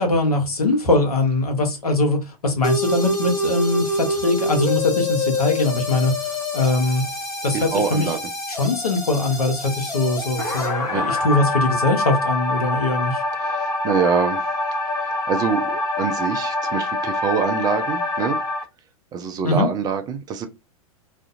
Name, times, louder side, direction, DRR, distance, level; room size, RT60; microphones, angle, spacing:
voice 1, 0.0-7.0 7.4-8.1 8.6-13.2 19.4-19.7, left 2 dB, 80° left, 0.9 m, -21 dB
sound 1, 2.6-18.6, left 2 dB, 20° left, 0.9 m, -25 dB
voice 2, 7.5-8.2 10.9-11.2 13.4-14.5 15.0-18.4 19.1-20.5, right 6 dB, 20° right, 0.4 m, -25 dB
2.5 x 2.4 x 2.4 m
figure-of-eight pair, 95°, 19 cm